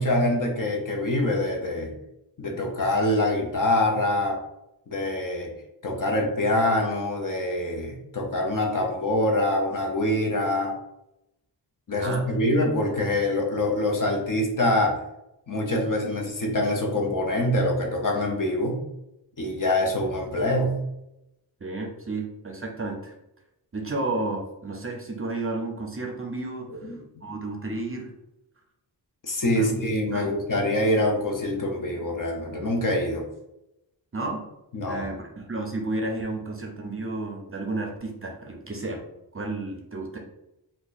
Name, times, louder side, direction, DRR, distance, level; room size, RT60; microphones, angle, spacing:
voice 1, 0.0-1.9 2.4-4.4 4.9-5.5 5.8-10.8 11.9-15.0 15.5-18.8 19.4-20.8 26.8-27.0 29.2-33.3 34.7-35.1, left 1 dB, 45° left, 1 dB, 0.7 m, -25 dB
voice 2, 11.9-12.3 21.6-23.1 23.7-26.7 27.2-28.1 29.5-29.8 30.1-30.3 34.1-34.4 34.8-39.0 39.3-40.2, right 2 dB, 30° right, 2 dB, 0.5 m, -32 dB
2.8 x 2.3 x 4.0 m, 0.88 s
wide cardioid pair, 115°, 45 cm